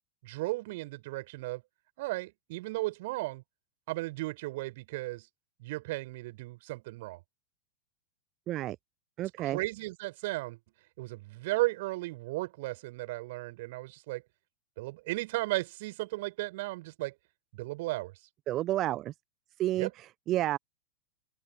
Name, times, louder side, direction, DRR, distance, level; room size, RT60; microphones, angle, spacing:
voice 1, 0.2-1.6 2.0-3.4 3.9-5.3 5.6-7.2 9.4-10.6 11.0-14.2 14.8-17.1 17.5-18.1 19.8-19.9, right 20 dB, 50° right, 4.6 m, -35 dB
voice 2, 9.2-9.6 18.5-19.1 19.6-20.6, right 14 dB, 35° right, 0.9 m, -30 dB
open air
figure-of-eight pair, 90°, 0 cm